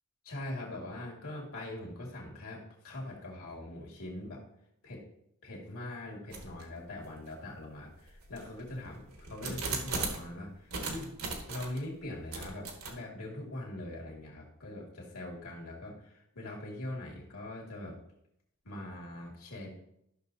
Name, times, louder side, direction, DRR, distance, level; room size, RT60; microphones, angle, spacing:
voice 1, 0.3-4.4 4.8-5.0 5.4-11.1 11.5-18.0 18.6-19.9, left 1 dB, 85° left, -2 dB, 2.2 m, -42 dB
sound 1, 6.3-6.7 7.3-7.4 8.0-10.3 10.7-11.8 12.3-12.9, right 4 dB, 80° right, 1.5 m, -38 dB
13.5 x 6.1 x 2.7 m, 0.76 s
head